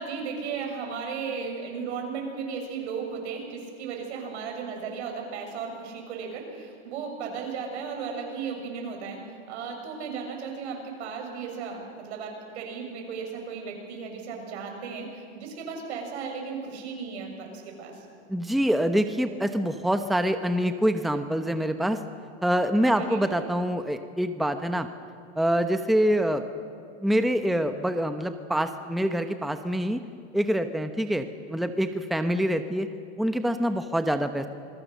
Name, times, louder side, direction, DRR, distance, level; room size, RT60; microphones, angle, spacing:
voice 1, 0.0-18.0 22.8-23.2, right 5 dB, 75° right, 2 dB, 6.7 m, -35 dB
voice 2, 18.3-22.0 22.4-24.9 25.4-26.4 27.0-30.0 30.3-32.9 33.2-34.5, equal, ahead, 8 dB, 1.0 m, -25 dB
27.0 x 22.0 x 6.6 m, 2.3 s
hypercardioid pair, 105°, 34 cm